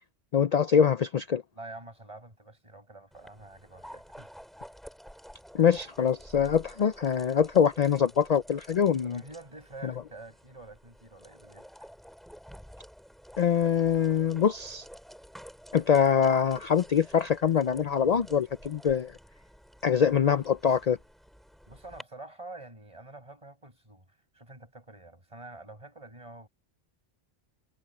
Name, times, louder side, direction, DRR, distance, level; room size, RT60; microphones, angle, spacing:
voice 1, 0.3-1.4 5.5-9.2 9.8-9.9 13.4-14.8 15.7-19.1 19.8-21.0, left 7 dB, 55° left, 0.4 m, -24 dB
voice 2, 1.5-4.3 9.0-11.7 21.7-24.1 24.3-26.5, right 2 dB, 25° right, 6.0 m, -47 dB
sound 1, 3.1-22.0, equal, ahead, 3.4 m, -50 dB
omnidirectional pair, 1.2 m